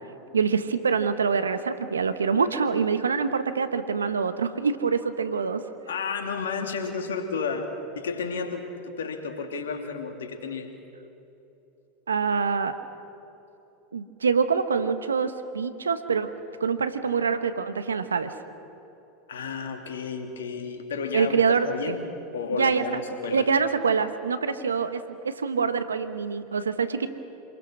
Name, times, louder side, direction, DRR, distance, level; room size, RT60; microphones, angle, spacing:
voice 1, 0.3-5.6 12.1-12.8 13.9-16.3 16.6-18.3 21.1-21.9 22.5-22.8 23.3-27.1, right 5 dB, 90° right, 10 dB, 1.2 m, -25 dB
voice 2, 5.9-7.7 8.0-10.7 19.3-22.0 22.3-23.5, left 5 dB, 80° left, 5 dB, 2.6 m, -32 dB
27.0 x 21.0 x 6.3 m, 2.9 s
hypercardioid pair, 90°, 0 cm